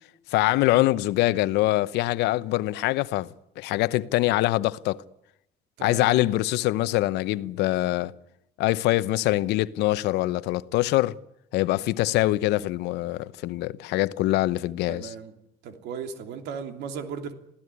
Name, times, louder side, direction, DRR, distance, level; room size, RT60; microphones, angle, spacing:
voice 1, 0.3-3.3 3.6-5.0 5.8-8.1 8.6-11.2 11.5-15.1, left 17 dB, 90° left, 0.9 m, -24 dB
voice 2, 5.8-6.2 12.0-12.2 14.9-15.3 15.6-17.3, right 6 dB, 85° right, 3.1 m, -36 dB
27.0 x 16.5 x 9.8 m
cardioid pair, 110°, 17 cm